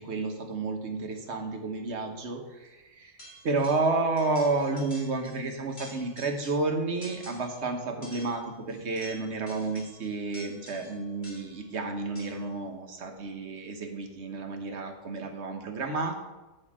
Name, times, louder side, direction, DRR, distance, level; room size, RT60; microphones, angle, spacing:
voice 1, 0.0-3.1 3.4-16.2, right 3 dB, 50° right, 4 dB, 1.3 m, -31 dB
sound 1, 3.2-3.9 4.2-5.4 5.7-6.7 7.0-7.6 8.0-11.6 12.2-12.5, left 1 dB, 40° left, 2.5 m, -49 dB
7.2 x 5.3 x 7.3 m, 1.1 s
omnidirectional pair, 1.6 m